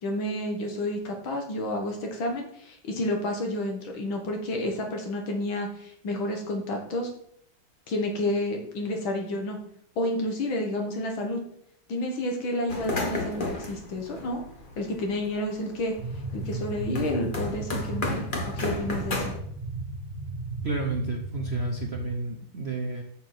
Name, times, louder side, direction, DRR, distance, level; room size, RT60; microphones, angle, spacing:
voice 1, 0.0-7.1 7.9-9.6 10.0-11.4 11.9-14.4 14.8-15.9 16.3-18.3 18.5-19.3, left 1 dB, 85° left, 2 dB, 2.4 m, -30 dB
sound 1, 12.7-15.3 15.7-19.4, left 2 dB, 30° left, 1.2 m, -33 dB
sound 2, 15.9-22.1, right 3 dB, 40° right, 1.6 m, -35 dB
voice 2, 20.6-23.0, right 3 dB, 60° right, 3 dB, 0.7 m, -31 dB
7.1 x 5.7 x 6.0 m, 0.67 s
omnidirectional pair, 2.1 m